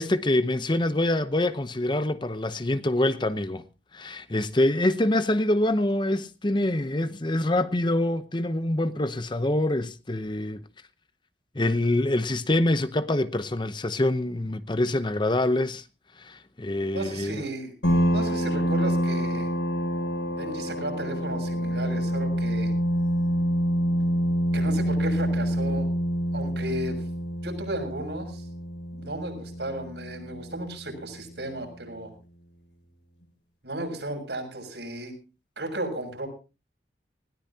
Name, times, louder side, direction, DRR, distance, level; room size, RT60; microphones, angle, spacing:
voice 1, 0.0-3.6 3.9-10.6 11.5-15.8 16.2-17.4, left 1 dB, 25° left, 0.8 m, -25 dB
voice 2, 16.9-17.7 18.1-19.5 20.4-22.7 24.5-25.9 26.3-27.0 27.4-28.5 28.9-32.1 33.6-35.1 35.6-36.3, right 1 dB, 75° right, 6.8 m, -34 dB
sound 1, 17.8-31.1, equal, 85° left, 7.0 m, -27 dB
20.0 x 17.5 x 2.8 m
head